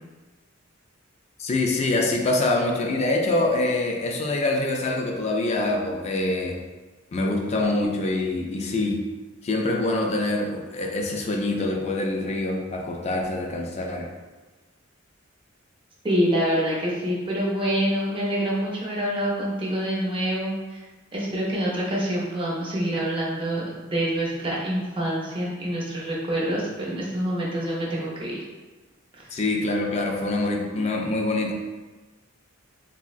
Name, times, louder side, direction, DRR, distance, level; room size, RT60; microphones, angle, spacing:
voice 1, 1.4-6.6 7.1-9.0 9.4-14.1 29.3-31.5, left 2 dB, 35° left, 1 dB, 0.3 m, -25 dB
voice 2, 16.0-20.9 21.1-28.4, right 1 dB, 25° right, -5 dB, 0.6 m, -26 dB
3.4 x 2.0 x 2.4 m, 1.2 s
head